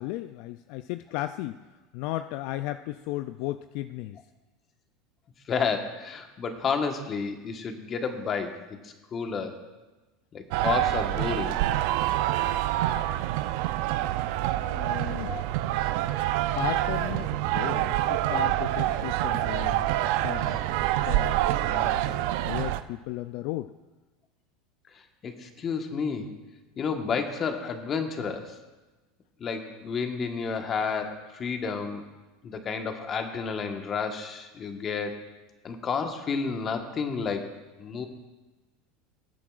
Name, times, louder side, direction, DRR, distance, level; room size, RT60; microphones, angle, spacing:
voice 1, 0.0-1.6 1.9-4.2 14.6-15.4 16.5-19.9 20.2-23.7, left 15 dB, 65° left, 11 dB, 0.3 m, -35 dB
voice 2, 5.5-8.6 8.8-9.6 10.3-11.6 15.1-15.4 25.2-26.3 26.8-28.6 29.4-32.0 32.4-35.3 35.6-37.5 37.8-38.1, left 5 dB, 35° left, 5 dB, 1.3 m, -31 dB
sound 1, 10.5-22.8, right 14 dB, 70° right, 0.5 m, -26 dB
20.0 x 8.5 x 2.5 m, 1.2 s
supercardioid pair, 100°, 0 cm